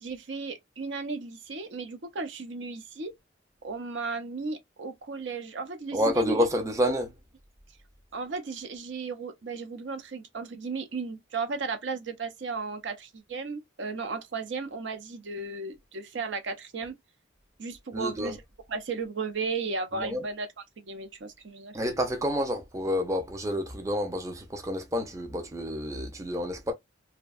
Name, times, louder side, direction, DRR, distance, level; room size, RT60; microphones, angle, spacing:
voice 1, 0.0-3.1 3.6-6.5 8.1-17.0 17.6-18.4 18.7-21.8, right 4 dB, 65° right, 0.6 m, -35 dB
voice 2, 5.9-7.1 17.9-18.3 20.0-20.2 21.7-26.7, equal, 15° right, 0.4 m, -29 dB
2.5 x 2.2 x 2.3 m
head